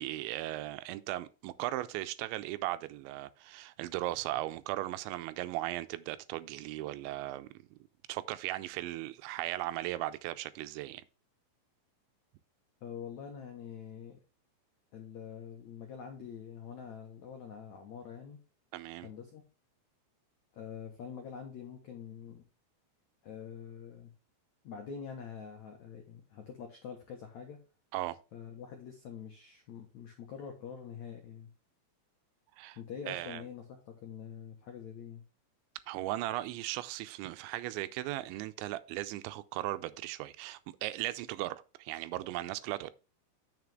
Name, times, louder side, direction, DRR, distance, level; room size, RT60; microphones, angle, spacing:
voice 1, 0.0-7.8 8.1-11.0 18.7-19.1 27.9-28.2 32.6-32.8 33.1-33.4 35.9-42.9, right 16 dB, 85° right, 2.9 m, -37 dB
voice 2, 12.8-14.2 14.9-18.4 19.0-19.4 20.5-22.4 23.2-24.1 24.6-27.6 28.3-31.5 32.8-35.2, left 7 dB, 80° left, 1.6 m, -45 dB
9.4 x 6.7 x 3.5 m
omnidirectional pair, 5.3 m